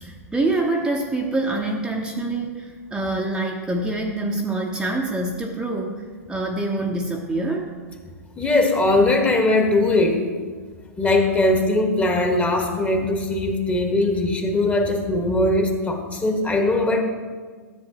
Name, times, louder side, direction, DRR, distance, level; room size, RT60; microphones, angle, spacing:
voice 1, 0.0-6.0 6.3-7.7, right 2 dB, 10° right, -1 dB, 0.8 m, -25 dB
voice 2, 8.4-10.2 11.0-17.0, left 2 dB, 15° left, 4 dB, 1.3 m, -20 dB
13.0 x 7.9 x 2.9 m, 1.5 s
hypercardioid pair, 105°, 9 cm